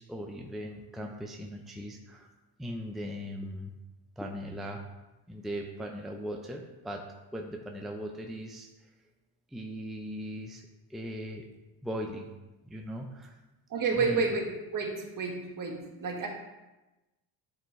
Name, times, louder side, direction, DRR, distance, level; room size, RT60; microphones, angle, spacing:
voice 1, 0.0-2.3 2.6-3.7 4.2-4.8 5.3-7.0 7.3-8.9 9.5-10.6 10.9-11.4 11.8-12.3 12.7-13.4 13.9-14.3, equal, ahead, 1 dB, 0.6 m, -39 dB
voice 2, 13.7-14.5 14.7-16.3, right 4 dB, 45° right, 1 dB, 1.6 m, -30 dB
9.5 x 4.5 x 3.2 m, 1.1 s
supercardioid pair, 80°, 45 cm